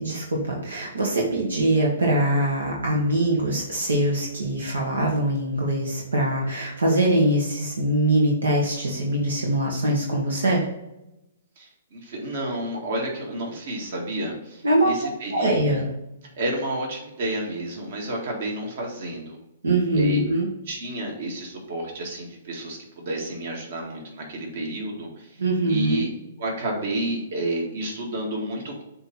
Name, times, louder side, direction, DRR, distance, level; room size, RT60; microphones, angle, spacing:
voice 1, 0.0-10.6 14.6-15.0 15.3-15.8 19.6-20.5 25.4-26.0, right 1 dB, 85° right, -2 dB, 1.4 m, -23 dB
voice 2, 11.6-15.8 16.3-19.4 19.9-20.2 20.7-25.4 25.7-26.1 26.4-28.8, right 1 dB, 60° right, 0 dB, 2.0 m, -30 dB
7.6 x 3.0 x 4.3 m, 0.90 s
hypercardioid pair, 130°, 0 cm